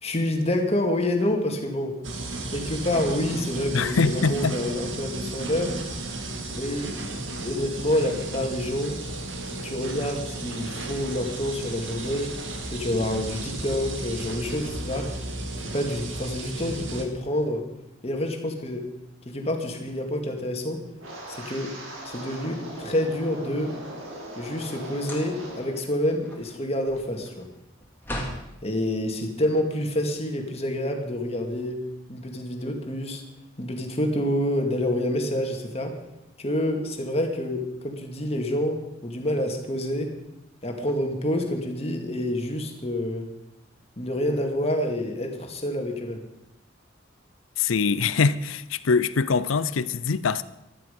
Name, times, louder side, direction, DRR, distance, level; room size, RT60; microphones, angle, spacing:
voice 1, 0.0-2.0 2.5-5.8 6.5-6.9 7.4-9.0 9.5-12.4 12.7-15.1 15.6-17.7 18.0-18.9 19.3-20.8 21.3-21.8 22.1-23.8 24.4-27.5 28.6-31.8 32.1-33.2 33.6-36.0 36.4-40.1 40.6-43.3 44.0-46.2, left 1 dB, 30° left, 2.2 m, -28 dB
sound 1, 2.0-17.1, right 2 dB, 70° right, 2.1 m, -34 dB
voice 2, 3.7-4.6 47.6-50.4, left 4 dB, 85° left, 0.6 m, -23 dB
Wind, 21.0-25.8 26.1-26.5 27.0-27.2, right 1 dB, 90° right, 4.5 m, -39 dB
sound 2, 22.6-23.7 24.9-25.6 26.0-28.5, equal, 10° left, 2.3 m, -38 dB
15.0 x 12.5 x 5.3 m
head